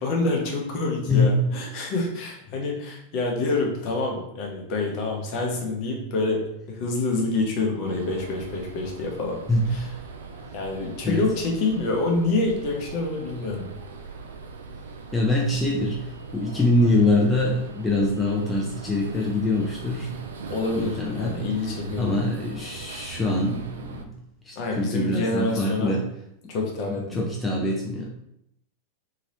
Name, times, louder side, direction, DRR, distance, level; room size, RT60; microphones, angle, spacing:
voice 1, 0.0-9.4 9.7-9.8 10.5-13.7 20.5-22.1 24.6-26.0 26.5-27.3, left 3 dB, 45° left, 0 dB, 0.8 m, -27 dB
voice 2, 1.1-1.5 9.5-9.8 11.0-11.3 15.1-20.3 20.7-21.5 22.0-24.2 24.4-26.1 26.9-28.1, left 2 dB, 10° left, -2 dB, 0.4 m, -24 dB
sound 1, 7.8-24.0, right 4 dB, 65° right, 0.4 m, -40 dB
2.9 x 2.8 x 2.8 m, 0.77 s
figure-of-eight pair, 90°, 0 cm